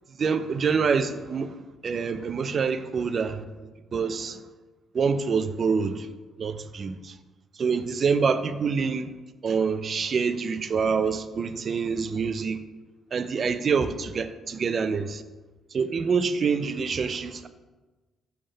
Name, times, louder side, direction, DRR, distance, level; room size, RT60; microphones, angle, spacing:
voice 1, 0.1-4.4 4.9-6.1 6.4-7.2 7.6-9.1 9.4-12.6 13.1-15.2 15.7-17.5, right 5 dB, 50° right, 0.4 m, -26 dB
5.5 x 3.4 x 5.2 m
cardioid pair, 90°, 0 cm